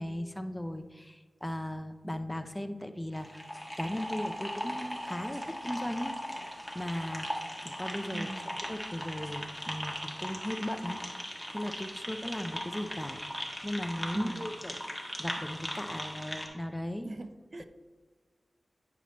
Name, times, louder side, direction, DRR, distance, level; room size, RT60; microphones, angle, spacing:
voice 1, 0.0-3.5 3.8-6.2 6.7-8.3 8.7-17.1, left 1 dB, 10° left, 8 dB, 0.6 m, -37 dB
sound 1, 3.1-16.5, equal, 5° right, 1.4 m, -39 dB
voice 2, 8.1-8.6 14.1-14.5 17.0-17.7, right 2 dB, 55° right, 11 dB, 0.5 m, -40 dB
9.6 x 5.9 x 3.1 m, 1.4 s
cardioid pair, 50°, 0 cm